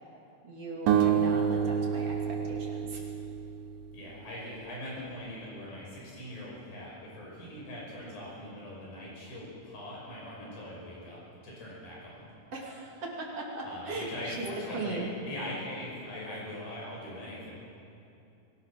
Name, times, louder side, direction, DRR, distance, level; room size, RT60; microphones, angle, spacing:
voice 1, 0.4-3.1 12.5-14.5 14.7-15.1, right 2 dB, 40° right, -2 dB, 3.4 m, -38 dB
sound 1, 0.9-4.0, right 8 dB, 70° right, 2.7 m, -28 dB
voice 2, 3.9-11.2 11.4-12.3 13.6-17.5, left 1 dB, 70° left, -5 dB, 7.7 m, -41 dB
24.5 x 18.0 x 6.0 m, 2.7 s
omnidirectional pair, 4.3 m